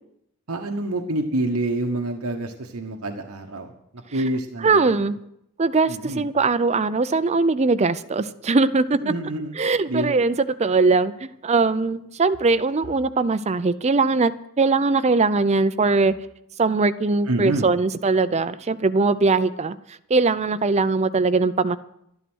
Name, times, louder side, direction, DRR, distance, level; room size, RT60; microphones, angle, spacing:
voice 1, 0.5-4.9 5.9-6.2 9.0-9.5 9.9-10.1 17.3-17.7, right 1 dB, 90° right, 4 dB, 1.2 m, -27 dB
voice 2, 4.6-5.2 5.6-9.0 9.6-10.3 10.6-14.3 14.6-16.1 16.6-19.8 20.1-21.8, right 3 dB, 30° right, 14 dB, 0.5 m, -20 dB
12.0 x 11.0 x 6.3 m, 0.76 s
head